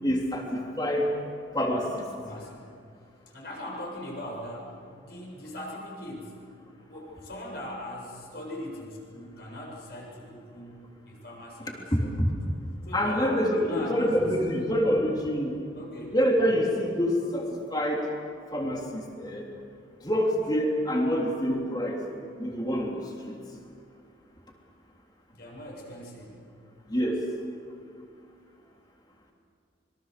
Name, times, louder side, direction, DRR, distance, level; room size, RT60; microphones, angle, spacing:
voice 1, 0.0-1.1 1.5-2.0 11.9-12.3 12.9-15.5 16.1-18.0 18.5-19.5 20.0-22.0 22.4-22.9 23.3-23.4 26.9-27.2, equal, 20° left, 0 dB, 3.3 m, -26 dB
voice 2, 2.1-2.6 3.3-4.7 5.0-6.4 6.9-12.3 12.9-14.3 15.7-16.2 25.3-26.4, left 1 dB, 55° left, -2 dB, 7.6 m, -40 dB
25.5 x 23.5 x 6.9 m, 2.3 s
head